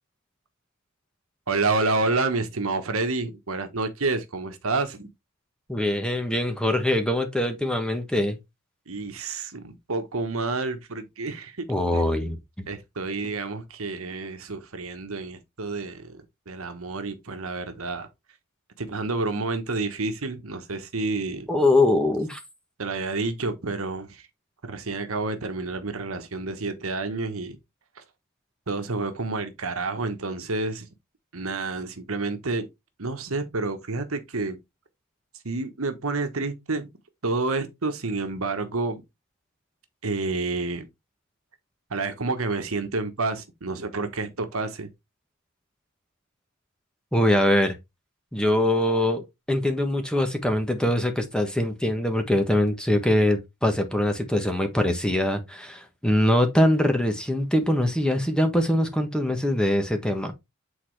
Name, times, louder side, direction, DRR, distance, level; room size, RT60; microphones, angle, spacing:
voice 1, 1.5-5.1 8.9-11.7 11.9-12.3 12.7-18.1 18.8-21.5 22.8-24.3 24.6-27.6 28.0-28.1 28.7-30.9 31.3-32.7 33.0-34.6 35.4-36.9 37.2-39.0 40.0-40.9 41.9-44.9, right 3 dB, 80° right, 1.3 m, -29 dB
voice 2, 5.7-8.4 11.7-12.7 21.5-22.4 47.1-47.7 48.3-60.3, left 1 dB, 5° left, 1.3 m, -23 dB
8.5 x 4.1 x 3.3 m
head